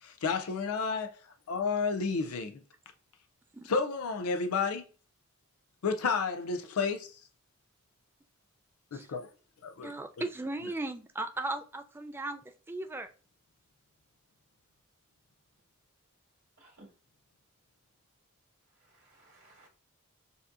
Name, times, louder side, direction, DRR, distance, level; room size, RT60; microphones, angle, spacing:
voice 1, 0.0-1.1 1.5-2.6 3.6-4.8 5.8-7.2 8.9-9.3 9.6-10.3, left 5 dB, 90° left, 0.5 m, -31 dB
voice 2, 9.8-12.4 12.7-13.1, right 2 dB, 10° right, 0.3 m, -36 dB
voice 3, 16.6-16.9 18.8-19.7, right 1 dB, 85° right, 1.8 m, -58 dB
6.7 x 2.7 x 2.5 m
head